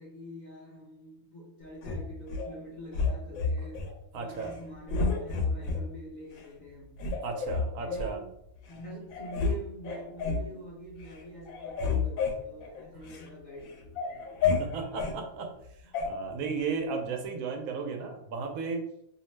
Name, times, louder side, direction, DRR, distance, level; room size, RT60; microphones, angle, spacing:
voice 1, 0.0-6.9 7.9-8.3 8.7-14.4, equal, 45° left, -5 dB, 0.6 m, -45 dB
sound 1, 1.8-2.5 2.9-3.9 4.3-4.6 4.9-5.8 6.4-6.5 7.0-8.1 8.7-8.8 9.1-9.6 9.8-10.5 10.9-11.2 11.5-13.3 13.7-15.2 15.9-16.1, left 4 dB, 85° left, 1.0 m, -30 dB
voice 2, 4.1-4.5 7.2-8.2 14.6-15.5 15.8-18.9, right 5 dB, 90° right, 4 dB, 1.0 m, -34 dB
2.7 x 2.1 x 3.1 m, 0.77 s
omnidirectional pair, 1.4 m